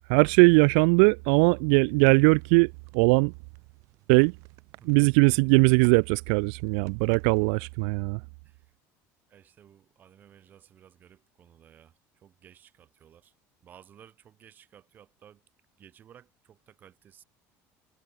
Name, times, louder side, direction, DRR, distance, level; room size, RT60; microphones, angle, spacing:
voice 1, 0.1-3.3 4.1-4.3 4.9-8.2, right 40 dB or more, 80° right, 0.4 m, -20 dB
sound 1, 1.9-7.5, right 23 dB, 55° right, 5.9 m, -56 dB
voice 2, 4.8-5.2 7.5-7.6 8.4-8.7 9.3-13.3 13.6-15.4 15.8-17.2, right 9 dB, 30° right, 6.7 m, -56 dB
cardioid pair, 175°, 6 cm